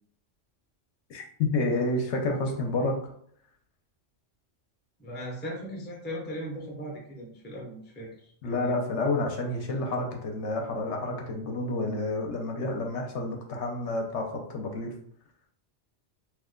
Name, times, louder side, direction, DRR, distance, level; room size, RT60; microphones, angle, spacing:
voice 1, 1.1-2.9 8.4-14.9, left 2 dB, 70° left, 2 dB, 0.9 m, -29 dB
voice 2, 5.0-8.8, equal, 10° left, -2 dB, 0.5 m, -38 dB
3.0 x 2.1 x 3.6 m, 0.65 s
omnidirectional pair, 1.2 m